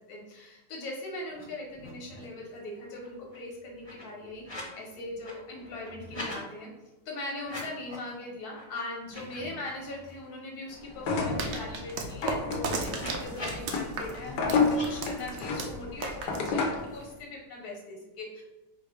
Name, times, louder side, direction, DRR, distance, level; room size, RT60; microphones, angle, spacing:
voice 1, 0.1-6.7 7.0-18.4, left 2 dB, 60° left, -1 dB, 1.5 m, -40 dB
sound 1, 1.3-2.4 2.7-4.8 5.1-6.4 7.4-8.1 8.5-8.6 9.0-10.3 10.7-10.8 11.1-13.8 14.7-14.9, left 1 dB, 20° left, 0.8 m, -44 dB
sound 2, 11.0-16.9, left 4 dB, 80° left, 1.3 m, -31 dB
sound 3, 11.4-17.2, right 4 dB, 65° right, 0.9 m, -36 dB
4.4 x 2.3 x 4.7 m, 1.0 s
omnidirectional pair, 1.9 m